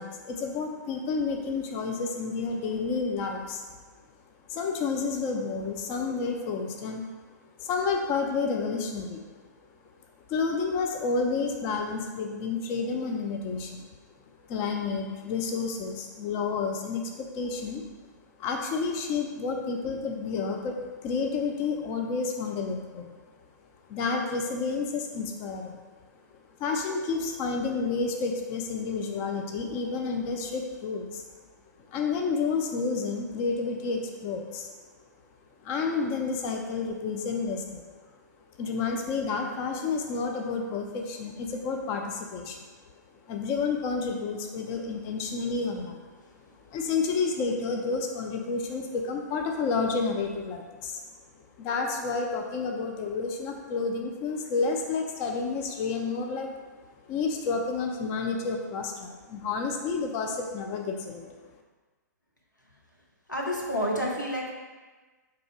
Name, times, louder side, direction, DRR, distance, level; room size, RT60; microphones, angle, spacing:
voice 1, 0.0-3.6 4.5-7.1 7.6-9.2 10.3-13.9 14.5-17.8 18.4-23.1 23.9-25.8 26.6-31.2 31.9-34.7 35.6-37.9 38.6-42.6 43.3-46.0 46.7-51.0 51.6-56.5 57.1-61.4, left 4 dB, 25° left, 2 dB, 0.4 m, -30 dB
voice 2, 63.3-64.5, equal, 90° left, -2 dB, 0.9 m, -29 dB
3.7 x 2.8 x 4.6 m, 1.3 s
figure-of-eight pair, 115°, 10 cm